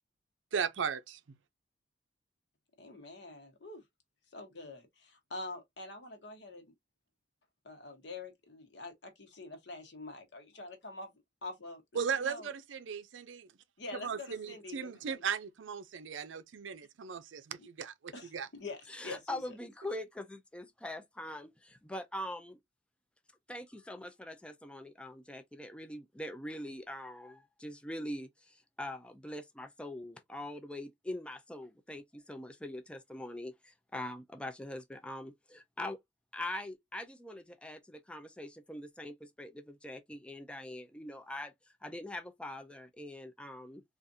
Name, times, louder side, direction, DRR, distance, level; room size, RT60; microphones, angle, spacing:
voice 1, 0.5-1.2 11.9-13.5 13.9-18.5, right 6 dB, 85° right, 0.5 m, -37 dB
voice 2, 2.8-3.8 4.3-6.6 7.6-11.1 11.4-12.5 13.8-15.2 18.1-19.4, left 2 dB, 65° left, 1.1 m, -46 dB
voice 3, 18.9-22.6 23.5-36.0 36.3-41.5 41.8-43.8, left 1 dB, 5° left, 0.3 m, -43 dB
3.7 x 2.4 x 2.6 m
head